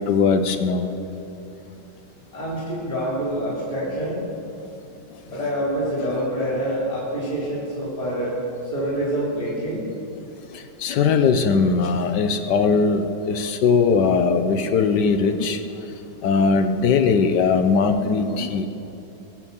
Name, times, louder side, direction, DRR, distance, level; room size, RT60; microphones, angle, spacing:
voice 1, 0.1-0.9 10.8-15.6 16.2-18.7, left 5 dB, 75° left, 8 dB, 1.4 m, -19 dB
voice 2, 2.3-4.2 5.2-8.3 8.7-9.8, right 1 dB, 20° left, -6 dB, 3.8 m, -26 dB
21.5 x 7.2 x 7.1 m, 3.0 s
omnidirectional pair, 1.9 m